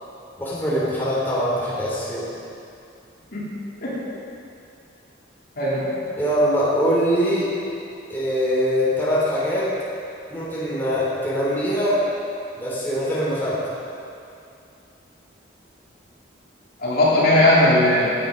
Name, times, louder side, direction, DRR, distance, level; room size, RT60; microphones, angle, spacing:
voice 1, 0.4-2.3 6.2-7.5 8.1-9.7 10.3-12.1 12.6-13.6, equal, 10° left, -7 dB, 3.2 m, -22 dB
voice 2, 5.6-6.0 16.8-18.1, left 1 dB, 50° left, -7 dB, 3.0 m, -18 dB
15.5 x 11.0 x 5.2 m, 2.6 s
head